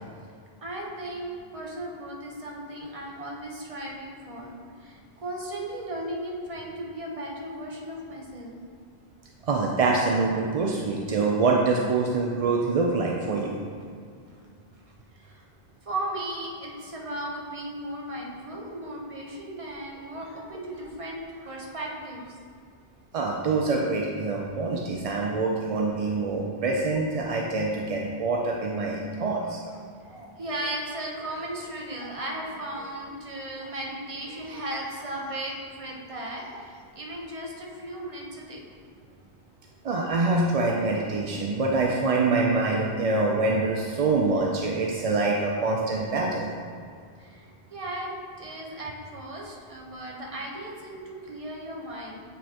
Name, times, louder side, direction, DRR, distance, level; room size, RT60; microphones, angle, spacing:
voice 1, 0.6-8.6 14.3-14.4 15.2-15.4 15.9-22.2 29.4-38.6 47.2-48.1 48.4-52.2, right 1 dB, 35° right, -2 dB, 0.9 m, -36 dB
voice 2, 9.5-13.6 23.1-29.6 39.8-46.5, right 3 dB, 50° right, -1 dB, 0.4 m, -25 dB
8.0 x 4.8 x 2.9 m, 2.2 s
omnidirectional pair, 1.1 m